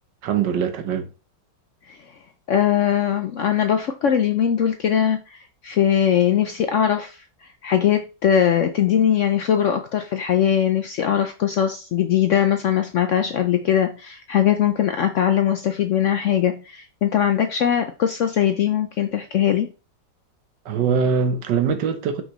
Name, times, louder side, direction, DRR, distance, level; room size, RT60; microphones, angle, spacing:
voice 1, 0.2-1.1 20.6-22.2, right 6 dB, 85° right, 1.6 m, -22 dB
voice 2, 2.5-7.2 7.6-19.7, left 9 dB, 70° left, 0.7 m, -21 dB
5.7 x 5.5 x 3.0 m
omnidirectional pair, 1.9 m